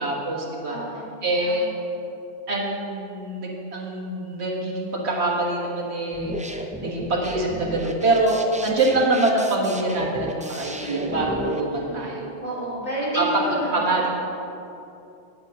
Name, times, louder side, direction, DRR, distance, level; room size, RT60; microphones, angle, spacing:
voice 1, 0.0-0.8 1.2-1.7 2.5-12.3 13.2-13.3 13.7-14.1, right 2 dB, 85° right, -2 dB, 1.8 m, -25 dB
voice 2, 0.7-1.1 1.4-1.7 10.8-11.3 11.7-12.0 12.4-13.8, equal, 40° left, -7 dB, 2.8 m, -30 dB
sound 1, 6.1-11.6, equal, 10° right, 0.4 m, -33 dB
9.7 x 8.1 x 5.5 m, 2.7 s
omnidirectional pair, 1.1 m